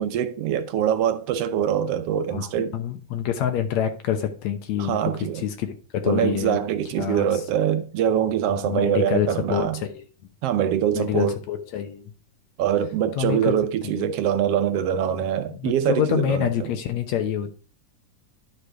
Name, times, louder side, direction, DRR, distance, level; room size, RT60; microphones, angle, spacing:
voice 1, 0.0-2.7 4.8-5.4 6.1-9.8 10.4-11.4 12.6-16.5, right 9 dB, 70° right, 1.5 m, -24 dB
voice 2, 2.3-6.6 7.0-7.4 8.5-10.0 10.9-12.1 13.2-13.5 13.8-14.1 15.5-17.5, left 9 dB, 75° left, 2.2 m, -27 dB
11.0 x 6.7 x 4.8 m
omnidirectional pair, 3.4 m